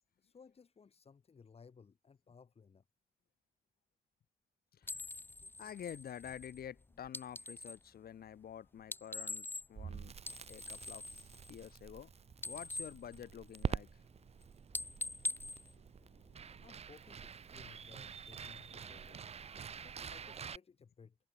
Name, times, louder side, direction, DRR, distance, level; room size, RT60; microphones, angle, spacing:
voice 1, 0.2-2.8 16.6-19.4 19.7-21.2, left 5 dB, 40° left, 3.9 m, -60 dB
sound 1, 4.8-7.9 8.8-9.9 10.2-12.0 12.3-13.9 14.2-14.4 14.7-16.5, left 2 dB, 15° left, 1.3 m, -44 dB
voice 2, 5.4-10.1 10.5-11.2 11.5-12.1 12.4-13.9 16.0-16.7, left 9 dB, 90° left, 2.4 m, -49 dB
Crackle, 9.8-20.6, right 7 dB, 40° right, 0.8 m, -46 dB
wide cardioid pair, 170°, 15 cm